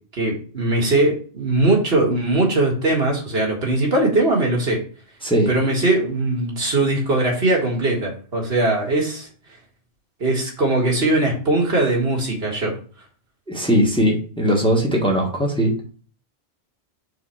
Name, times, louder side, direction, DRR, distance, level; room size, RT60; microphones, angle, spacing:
voice 1, 0.2-4.8 5.5-9.3 10.2-12.7, right 2 dB, 65° right, -1 dB, 2.0 m, -20 dB
voice 2, 13.5-15.8, equal, 5° left, -1 dB, 1.5 m, -19 dB
4.8 x 4.0 x 5.7 m, 0.40 s
omnidirectional pair, 1.1 m